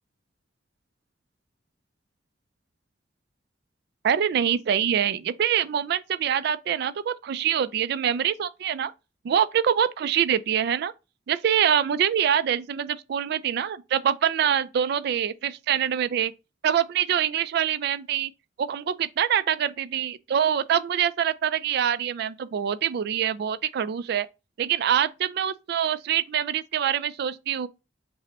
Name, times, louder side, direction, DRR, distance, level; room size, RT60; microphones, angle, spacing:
voice 1, 4.0-8.9 9.2-10.9 11.3-16.3 16.6-18.3 18.6-24.3 24.6-27.7, right 9 dB, 60° right, 0.3 m, -25 dB
5.0 x 2.1 x 2.8 m
head